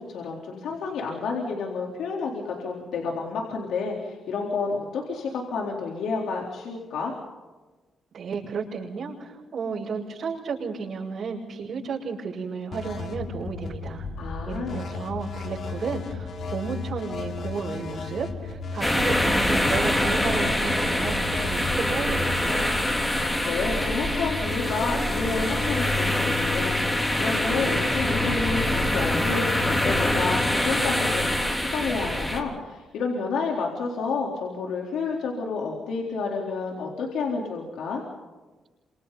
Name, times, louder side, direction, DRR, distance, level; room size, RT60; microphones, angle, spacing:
voice 1, 0.0-7.1 14.2-14.8 23.1-38.0, left 4 dB, 85° left, -1 dB, 4.1 m, -30 dB
voice 2, 8.1-14.1 14.5-22.7, right 5 dB, 55° right, -8 dB, 7.5 m, -33 dB
sound 1, 12.7-32.3, left 5 dB, 55° left, 3.4 m, -34 dB
sound 2, 18.8-32.4, left 1 dB, 10° left, 3.7 m, -25 dB
29.5 x 27.0 x 4.2 m, 1.3 s
cardioid pair, 125°, 0 cm